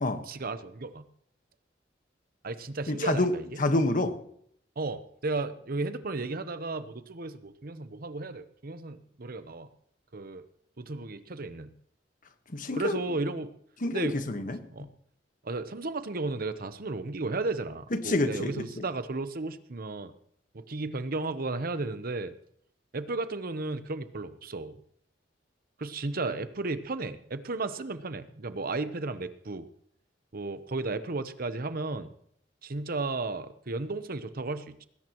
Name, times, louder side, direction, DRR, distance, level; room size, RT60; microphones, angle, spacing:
voice 1, 0.3-1.0 2.4-3.5 4.8-9.7 10.1-10.5 10.8-11.7 12.8-13.5 13.9-14.1 14.7-14.9 15.4-20.1 20.5-22.3 22.9-24.7 25.8-29.7 30.3-32.1 32.6-34.8, right 3 dB, 55° right, 12 dB, 0.9 m, -34 dB
voice 2, 2.9-4.1 12.5-13.0 13.8-14.6 17.9-18.8, left 2 dB, 50° left, 8 dB, 1.4 m, -28 dB
20.0 x 17.0 x 3.1 m, 0.67 s
head